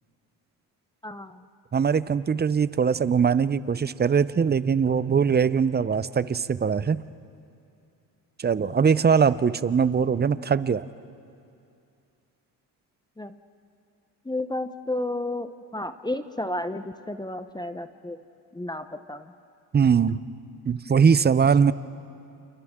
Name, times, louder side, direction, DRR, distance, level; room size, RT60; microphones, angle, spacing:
voice 1, 1.0-1.5 13.2-13.4 14.2-18.2 18.5-19.3, left 1 dB, 10° left, 10 dB, 0.8 m, -32 dB
voice 2, 1.7-7.0 8.4-10.9 19.7-20.2 20.7-21.7, right 6 dB, 25° right, 16 dB, 0.6 m, -21 dB
29.5 x 28.0 x 3.7 m, 2.6 s
supercardioid pair, 80°, 42 cm